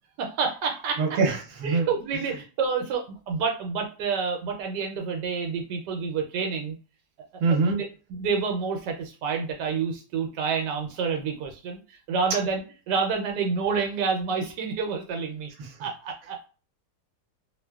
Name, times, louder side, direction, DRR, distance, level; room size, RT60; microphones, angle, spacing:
voice 1, 0.2-1.2 1.6-6.7 7.5-7.6 8.1-11.8 12.1-15.5 15.8-16.4, right 5 dB, 85° right, 3 dB, 1.2 m, -28 dB
voice 2, 1.0-1.9 7.4-7.8 15.6-15.7, right 4 dB, 60° right, 1 dB, 1.1 m, -24 dB
2.9 x 2.1 x 2.2 m, 0.35 s
omnidirectional pair, 1.8 m